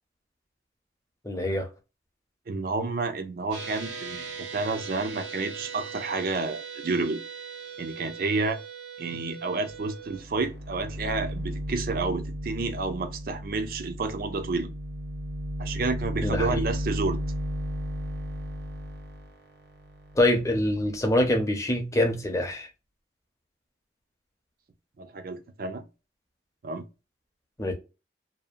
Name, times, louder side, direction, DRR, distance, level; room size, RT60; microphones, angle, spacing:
voice 1, 1.2-1.7 16.2-16.6 20.2-22.7 27.6-27.7, left 1 dB, 15° left, 0.6 m, -25 dB
voice 2, 2.5-7.2 7.8-8.6 9.0-14.7 15.6-17.2 25.0-25.8 26.6-26.8, right 3 dB, 50° right, 0.4 m, -30 dB
sound 1, 3.5-10.2, right 6 dB, 85° right, 1.2 m, -40 dB
sound 2, 9.7-9.8 10.1-21.2, equal, 65° right, 0.8 m, -35 dB
2.7 x 2.0 x 2.4 m
head